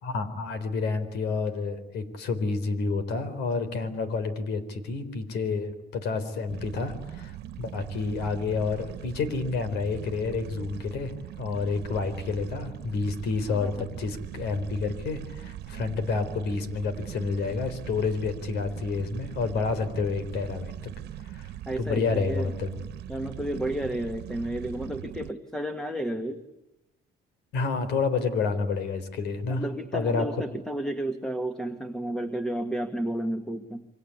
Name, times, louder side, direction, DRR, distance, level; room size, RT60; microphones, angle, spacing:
voice 1, 0.0-11.1 11.4-20.7 21.2-21.5 21.8-22.8 27.5-29.6 29.9-30.3, left 4 dB, 80° left, 12 dB, 4.0 m, -29 dB
sound 1, 6.5-25.3, right 12 dB, 75° right, 1.4 m, -41 dB
voice 2, 13.5-13.8 21.7-22.5 23.1-26.4 29.5-33.9, right 1 dB, 5° left, 8 dB, 1.7 m, -32 dB
28.5 x 24.0 x 8.5 m, 0.92 s
cardioid pair, 110°, 17 cm